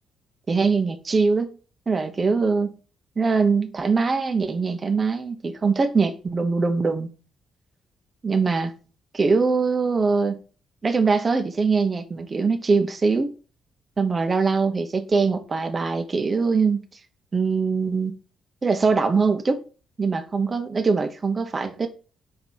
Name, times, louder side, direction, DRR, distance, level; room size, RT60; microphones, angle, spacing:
voice 1, 0.5-1.5 1.9-2.8 3.2-7.1 8.2-8.7 9.1-10.4 10.8-13.3 14.0-16.9 17.3-18.1 18.6-19.6 20.0-21.9, right 4 dB, 40° right, 0.9 m, -22 dB
5.5 x 3.8 x 4.5 m
hypercardioid pair, 40°, 0 cm